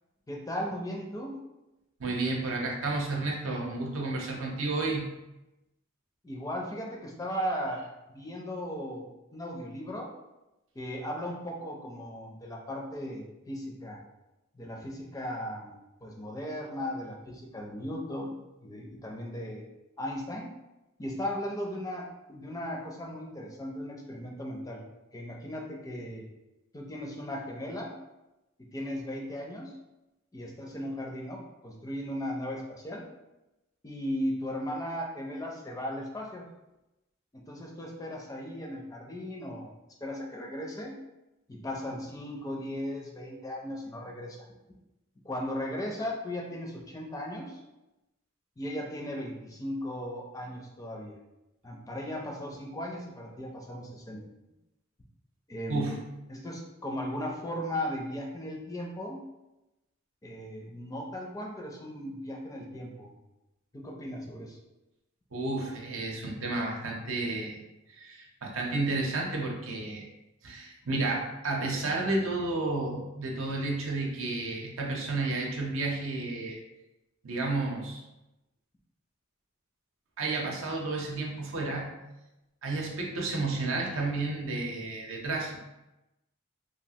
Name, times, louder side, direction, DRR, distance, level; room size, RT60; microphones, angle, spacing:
voice 1, 0.3-1.4 6.2-7.8 8.1-10.1 10.7-14.0 14.5-18.4 18.6-19.6 20.0-20.5 21.0-24.8 25.1-26.2 26.7-27.9 28.7-29.7 30.3-33.0 33.8-36.4 37.3-39.7 40.0-40.9 41.5-44.4 45.2-47.6 48.6-51.2 51.6-54.2 55.5-56.0 56.3-59.2 60.2-63.1 63.7-64.6, equal, 15° left, -1 dB, 0.4 m, -37 dB
voice 2, 2.0-5.1 55.7-56.0 65.3-67.6 67.9-70.0 70.4-76.6 77.2-78.0 80.2-81.9 82.6-85.6, right 2 dB, 80° right, 0 dB, 0.6 m, -31 dB
3.0 x 2.4 x 2.7 m, 0.96 s
head